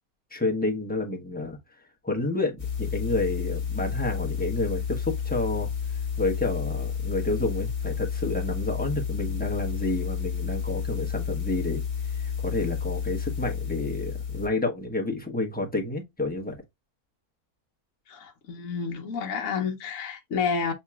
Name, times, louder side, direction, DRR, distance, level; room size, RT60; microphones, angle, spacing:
voice 1, 0.3-1.6 2.0-5.7 6.2-11.8 12.2-16.6, left 2 dB, 5° left, 0.8 m, -29 dB
sound 1, 2.6-14.5, left 7 dB, 30° left, 1.4 m, -31 dB
voice 2, 18.1-20.7, left 5 dB, 60° left, 1.1 m, -30 dB
6.7 x 2.9 x 2.3 m
omnidirectional pair, 1.6 m